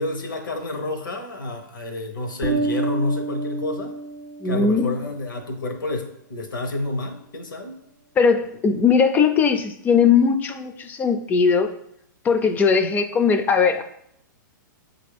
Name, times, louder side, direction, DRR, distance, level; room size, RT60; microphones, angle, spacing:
voice 1, 0.0-3.9 4.4-7.8, left 2 dB, 90° left, 5 dB, 0.9 m, -29 dB
Bass guitar, 2.4-4.8, right 3 dB, 40° right, 0.7 m, -28 dB
voice 2, 4.4-5.0 8.2-11.7 12.2-13.8, left 5 dB, 15° left, 8 dB, 0.3 m, -19 dB
6.2 x 2.5 x 3.3 m, 0.74 s
hypercardioid pair, 130°, 11 cm